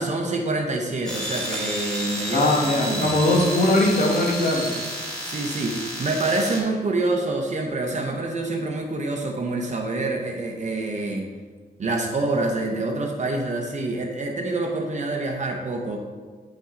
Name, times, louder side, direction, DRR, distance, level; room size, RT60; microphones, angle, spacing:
voice 1, 0.0-3.1 5.2-11.3 11.8-16.0, right 2 dB, 45° right, 1 dB, 0.7 m, -26 dB
sound 1, 1.1-6.6, equal, 5° left, 1.6 m, -31 dB
voice 2, 2.3-4.7, left 1 dB, 60° left, 0 dB, 1.3 m, -20 dB
7.6 x 5.6 x 3.8 m, 1.5 s
wide cardioid pair, 160°, 17 cm